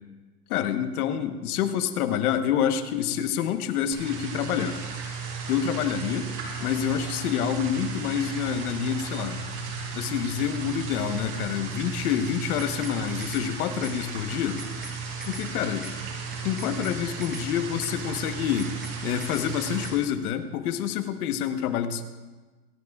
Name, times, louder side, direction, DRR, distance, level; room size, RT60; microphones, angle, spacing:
voice 1, 0.5-4.8 5.5-6.3 6.6-9.4 9.9-14.6 15.3-15.9 16.4-18.7 19.0-22.0, left 9 dB, 60° left, 8 dB, 1.2 m, -27 dB
sound 1, 3.9-19.9, right 5 dB, 50° right, 5.1 m, -35 dB
sound 2, 12.6-13.0 13.2-13.5 13.8-14.0 14.3-15.0 15.2-15.5 15.8-16.0 16.3-17.0 17.2-17.5 17.8-18.0 18.3-19.0 19.2-19.5 19.8-20.0, equal, ahead, 0.9 m, -42 dB
26.0 x 11.5 x 2.4 m, 1.3 s
supercardioid pair, 160°, 50 cm